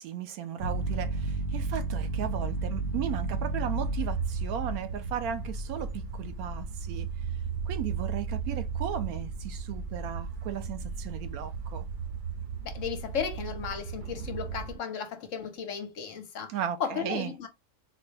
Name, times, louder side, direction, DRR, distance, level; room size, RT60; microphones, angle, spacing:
voice 1, 0.0-7.1 7.7-11.8 16.5-17.3, right 10 dB, 85° right, 1.1 m, -36 dB
sound 1, 0.6-14.7, right 4 dB, 50° right, 0.6 m, -34 dB
voice 2, 12.6-16.5 16.8-17.5, left 7 dB, 65° left, 1.0 m, -34 dB
4.1 x 2.2 x 3.2 m
omnidirectional pair, 1.5 m